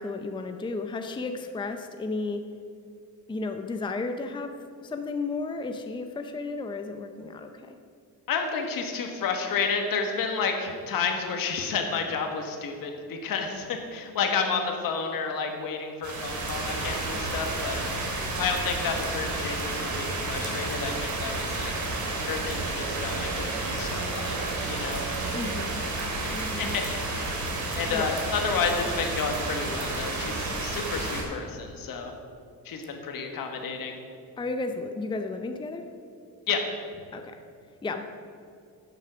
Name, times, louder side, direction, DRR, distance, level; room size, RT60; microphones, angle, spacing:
voice 1, 0.0-2.5 3.3-7.8 25.3-25.8 26.3-26.8 27.9-28.1 32.8-32.9 34.4-35.9 37.1-37.4 37.8-38.0, left 3 dB, 15° left, 6 dB, 0.6 m, -33 dB
voice 2, 8.3-17.8 18.4-21.7 22.3-25.0 26.2-27.3 27.7-32.1 32.6-33.9 36.5-36.7, left 5 dB, 65° left, 4 dB, 1.7 m, -31 dB
sound 1, 16.0-31.2, right 2 dB, 50° right, 2.5 m, -31 dB
sound 2, 20.8-27.9, right 8 dB, 70° right, 0.8 m, -43 dB
11.0 x 7.7 x 6.0 m, 2.4 s
cardioid pair, 115°, 36 cm